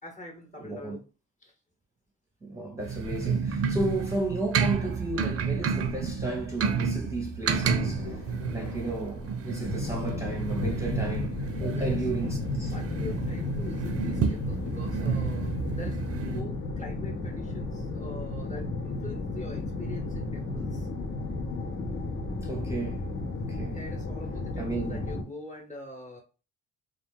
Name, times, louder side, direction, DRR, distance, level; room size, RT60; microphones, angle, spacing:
voice 1, 0.0-1.1 1.4-1.5 11.7-12.3 12.7-20.9 23.7-26.2, left 2 dB, 25° left, 1.0 m, -44 dB
voice 2, 0.6-1.0 2.4-8.1 8.5-12.7 16.2-16.4 22.4-23.0 23.5-23.8 24.6-25.0, right 2 dB, 10° right, 0.8 m, -33 dB
sound 1, 2.8-16.4, right 6 dB, 50° right, 0.5 m, -31 dB
Thunder, 7.6-14.6, left 1 dB, 60° left, 1.2 m, -39 dB
sound 2, 9.6-25.2, left 2 dB, 45° left, 0.7 m, -33 dB
2.4 x 2.3 x 3.5 m
cardioid pair, 90°, 30 cm